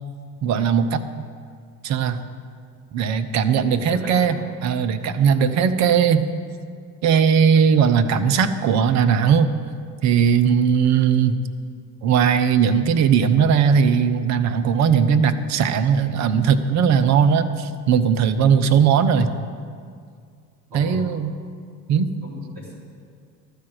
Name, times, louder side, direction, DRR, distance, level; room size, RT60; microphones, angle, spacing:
voice 1, 0.4-1.2 1.8-2.2 2.9-4.3 4.6-6.3 7.0-9.5 10.0-11.4 12.0-19.3 20.7-21.3 21.9-22.1, right 7 dB, 35° right, 10 dB, 0.6 m, -18 dB
voice 2, 3.6-4.5 5.4-5.7 20.7-21.0 22.2-22.7, left 1 dB, 70° right, -7 dB, 3.1 m, -37 dB
12.5 x 4.9 x 7.7 m, 2.1 s
figure-of-eight pair, 60°, 47 cm